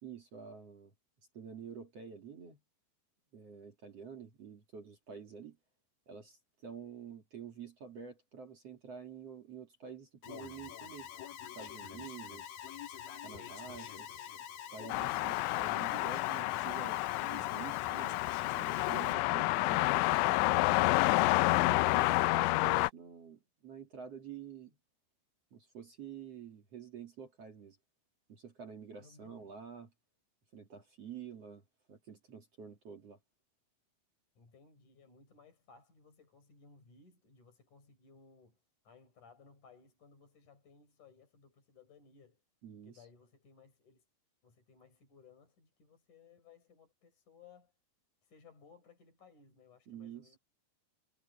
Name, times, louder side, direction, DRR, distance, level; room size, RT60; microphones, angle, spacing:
voice 1, 0.0-0.9 1.3-2.6 3.3-5.6 6.1-11.1 11.5-12.6 13.2-20.7 21.4-24.8 25.5-27.8 28.3-29.9 30.5-33.2 42.6-43.0 49.9-50.4, right 7 dB, 45° right, 2.4 m, -49 dB
Alarm, 10.2-19.1, left 9 dB, 60° left, 2.9 m, -46 dB
voice 2, 13.6-14.3 29.0-29.5 34.4-42.4 42.8-44.0 44.4-47.7 48.2-50.4, left 5 dB, 40° left, 6.3 m, -61 dB
sound 1, 14.9-22.9, left 21 dB, 85° left, 2.9 m, -29 dB
omnidirectional pair, 5.5 m